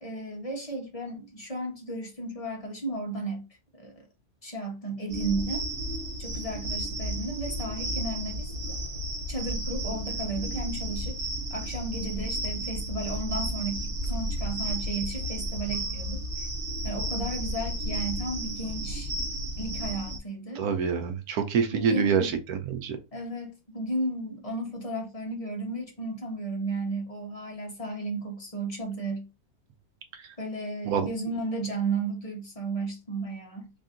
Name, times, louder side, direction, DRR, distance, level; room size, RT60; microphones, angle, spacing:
voice 1, 0.0-3.5 3.7-4.1 4.4-5.7 6.2-8.5 9.3-11.2 11.5-16.5 16.8-19.1 19.6-20.7 21.7-22.3 23.1-29.3 30.4-33.7, right 2 dB, 30° left, 0.9 m, -34 dB
sound 1, 5.1-20.2, right 1 dB, 45° right, 0.9 m, -33 dB
voice 2, 20.6-23.0 30.9-31.1, right 6 dB, 75° right, 1.2 m, -26 dB
3.6 x 2.6 x 3.6 m
omnidirectional pair, 1.6 m